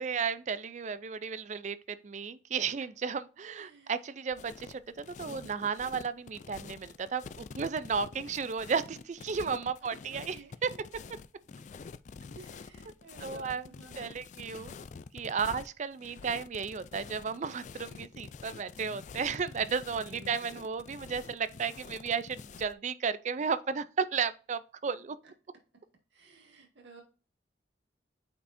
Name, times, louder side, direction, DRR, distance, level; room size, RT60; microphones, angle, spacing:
voice 1, 0.0-10.4 10.6-10.7 13.2-13.7 14.0-14.7 15.1-25.2, right 6 dB, 40° right, 0.4 m, -34 dB
voice 2, 3.5-3.9 10.0-10.5 12.3-14.1 19.9-20.6 25.2-25.3 26.1-27.0, right 3 dB, 90° right, 2.2 m, -54 dB
sound 1, 4.3-22.7, left 5 dB, 45° left, 0.3 m, -47 dB
8.3 x 4.8 x 2.6 m
head